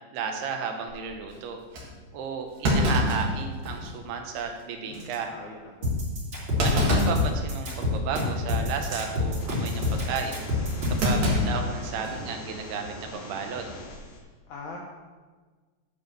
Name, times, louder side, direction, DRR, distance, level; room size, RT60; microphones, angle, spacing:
voice 1, 0.1-1.6 2.1-5.3 6.6-10.4 10.9-13.7, right 6 dB, 85° right, 4 dB, 2.9 m, -33 dB
Thump thud, 0.9-1.2 1.7-1.9 2.6-4.0 4.4-4.5 4.9-5.2 6.6-7.3 7.7-8.0 8.8-9.1 11.0-12.2 12.5-12.6 13.8-14.1, left 1 dB, 55° right, 2.2 m, -25 dB
voice 2, 4.8-5.9 14.5-14.8, left 3 dB, 75° left, -1 dB, 1.8 m, -42 dB
sound 1, 5.8-11.1, left 2 dB, 35° right, 2.5 m, -27 dB
sound 2, 9.2-14.2, left 1 dB, 55° left, 2.8 m, -42 dB
10.0 x 4.4 x 6.7 m, 1.4 s
omnidirectional pair, 4.5 m